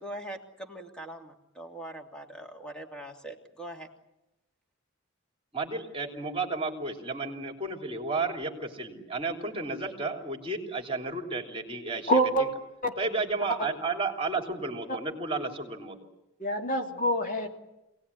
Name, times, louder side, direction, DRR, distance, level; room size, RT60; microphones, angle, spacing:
voice 1, 0.0-3.9, right 1 dB, 5° left, 2 dB, 2.9 m, -42 dB
voice 2, 5.5-12.1 13.0-16.0, right 3 dB, 25° right, 3 dB, 3.3 m, -32 dB
voice 3, 12.1-12.5 12.8-12.9 13.6-13.7 16.4-17.6, right 1 dB, 40° left, 3 dB, 2.9 m, -26 dB
26.5 x 19.0 x 9.8 m, 0.93 s
head